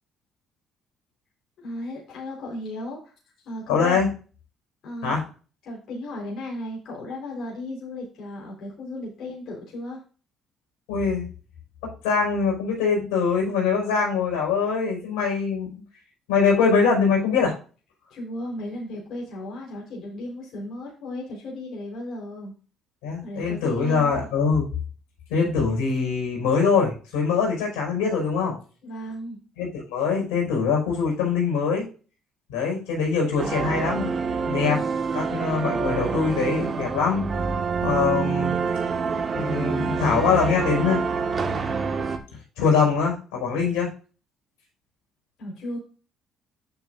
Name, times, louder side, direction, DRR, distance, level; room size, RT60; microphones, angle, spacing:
voice 1, 1.6-3.1 3.4-4.0 4.8-5.2 5.6-10.0 18.1-22.5 23.2-24.3 28.8-29.4 45.4-45.8, left 1 dB, 65° left, -3 dB, 4.3 m, -35 dB
voice 2, 3.7-4.1 5.0-5.2 10.9-11.3 11.8-15.8 16.3-17.6 23.0-24.6 25.3-28.6 29.6-31.9 32.5-34.1 34.4-34.8 35.1-37.2 37.8-38.5 39.3-41.0 42.6-43.9, left 5 dB, 85° left, -1 dB, 5.3 m, -23 dB
sound 1, 33.4-42.2, right 5 dB, 45° right, 1.6 m, -27 dB
11.5 x 6.9 x 2.6 m, 0.37 s
supercardioid pair, 65°, 0 cm